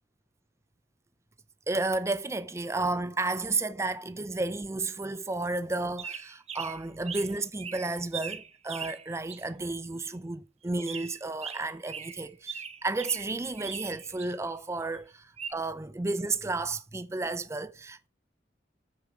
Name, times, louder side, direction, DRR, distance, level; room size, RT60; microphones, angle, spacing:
voice 1, 1.7-18.1, right 3 dB, 15° right, 0.4 m, -32 dB
sound 1, 6.0-7.3 7.6-9.4 10.8-14.3 15.4-15.5, right 7 dB, 35° right, 0.9 m, -40 dB
8.1 x 6.8 x 6.0 m
head